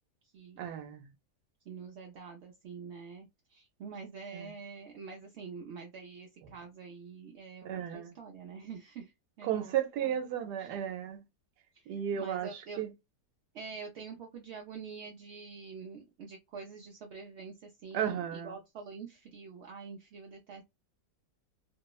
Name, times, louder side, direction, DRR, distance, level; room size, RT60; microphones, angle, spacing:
voice 1, 0.6-1.1 4.3-4.5 7.6-8.1 9.4-11.2 11.9-12.9 17.9-18.5, right 9 dB, 90° right, 1.2 m, -34 dB
voice 2, 1.7-10.2 10.6-10.7 11.7-11.9 12.1-12.8 13.5-20.6, right 5 dB, 65° right, 0.6 m, -46 dB
2.9 x 2.0 x 2.3 m
omnidirectional pair, 1.7 m